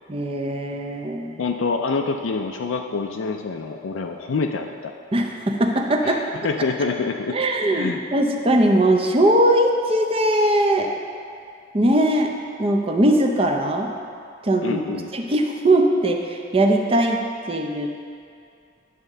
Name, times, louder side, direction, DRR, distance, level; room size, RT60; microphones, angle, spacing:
voice 1, 0.1-1.4 5.1-6.3 7.3-10.9 11.7-12.3 12.6-13.9 14.4-18.1, right 1 dB, 30° right, 3 dB, 0.6 m, -20 dB
voice 2, 1.4-4.9 6.0-6.2 6.4-7.4 7.7-8.0 14.6-15.1, left 4 dB, 85° left, 3 dB, 0.4 m, -26 dB
10.5 x 3.6 x 6.5 m, 2.4 s
head